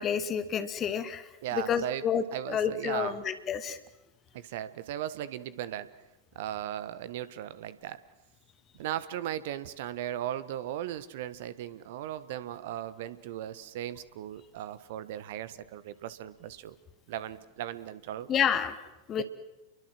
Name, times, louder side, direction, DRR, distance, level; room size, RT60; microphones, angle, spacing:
voice 1, 0.0-1.2 1.6-2.2 2.5-3.8 18.3-18.7 19.1-19.2, left 8 dB, 30° left, 10 dB, 2.3 m, -29 dB
voice 2, 1.4-3.2 4.3-5.9 6.3-8.0 8.8-16.7 17.1-18.3 19.2-19.3, right 12 dB, 55° right, 16 dB, 1.5 m, -37 dB
29.5 x 23.0 x 7.8 m, 0.99 s
figure-of-eight pair, 90°, 0 cm